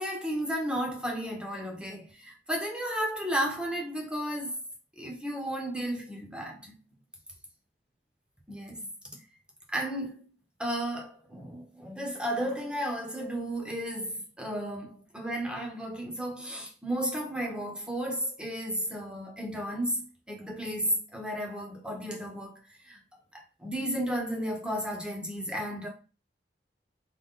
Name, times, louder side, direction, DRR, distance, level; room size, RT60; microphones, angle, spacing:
voice 1, 0.0-4.5 5.0-6.8 8.5-8.9 9.7-10.3 10.6-22.6 22.9-23.0 23.3-25.9, equal, 5° right, 1.0 m, -33 dB
3.9 x 3.0 x 3.7 m
head